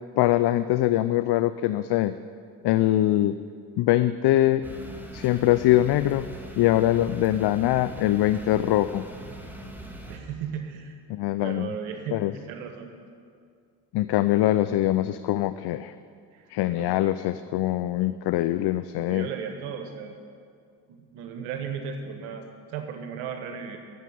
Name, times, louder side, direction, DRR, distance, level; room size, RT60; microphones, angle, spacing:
voice 1, 0.1-2.1 2.6-3.4 3.8-4.6 5.1-6.3 6.6-9.1 11.1-11.8 12.1-12.3 13.9-15.9 16.5-19.3, left 14 dB, 55° left, 12 dB, 0.6 m, -23 dB
sound 1, 4.6-10.2, right 1 dB, 5° right, 2.3 m, -41 dB
voice 2, 10.1-10.9 11.4-12.2 12.5-12.9 16.3-16.5 16.8-17.1 19.1-20.2 20.9-23.8, right 7 dB, 75° right, 5 dB, 1.3 m, -36 dB
13.0 x 7.3 x 10.0 m, 2.2 s
hypercardioid pair, 60°, 49 cm